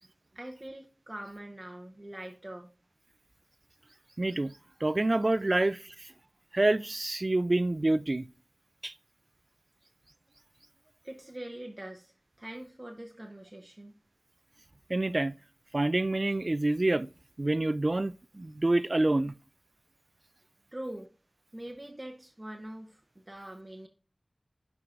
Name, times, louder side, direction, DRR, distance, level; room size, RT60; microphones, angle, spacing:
voice 1, 0.3-2.7 11.0-13.9 20.7-21.1 21.5-23.9, right 1 dB, 25° right, 0.8 m, -43 dB
voice 2, 4.2-4.5 4.8-5.8 6.5-8.3 8.8-8.9 14.9-15.3 15.7-17.1 17.4-19.3, right 2 dB, 50° right, 0.3 m, -27 dB
11.0 x 4.7 x 2.5 m
wide cardioid pair, 55°, 0 cm